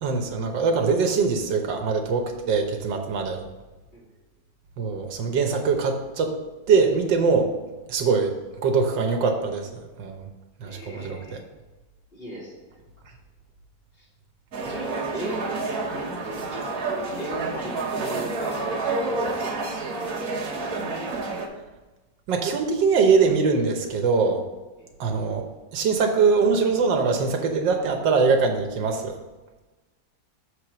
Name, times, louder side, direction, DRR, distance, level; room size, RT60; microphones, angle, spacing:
voice 1, 0.0-3.4 4.8-6.3 6.7-7.5 7.9-8.3 8.6-10.3 10.6-11.4 22.3-24.4 25.0-25.5 25.7-29.2, right 5 dB, 85° right, 4 dB, 1.7 m, -22 dB
voice 2, 10.6-11.5 12.1-12.8 14.0-14.1 14.7-18.8 19.0-20.7 24.8-24.9, right 1 dB, 30° left, -6 dB, 2.5 m, -38 dB
sound 1, 14.5-21.5, right 3 dB, 60° right, 1.7 m, -29 dB
6.8 x 4.9 x 6.0 m, 1.2 s
omnidirectional pair, 1.9 m